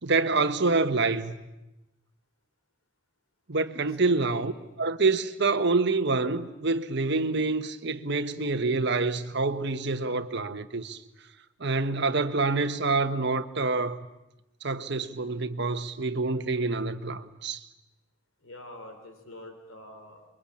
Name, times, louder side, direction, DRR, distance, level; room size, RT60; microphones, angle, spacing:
voice 1, 0.0-1.3 3.5-4.5 4.8-11.0 11.6-14.0 14.6-17.6, right 3 dB, 55° right, 1.3 m, -27 dB
voice 2, 4.0-4.6 18.4-20.3, left 1 dB, 80° left, 4.0 m, -46 dB
27.5 x 23.0 x 8.7 m
head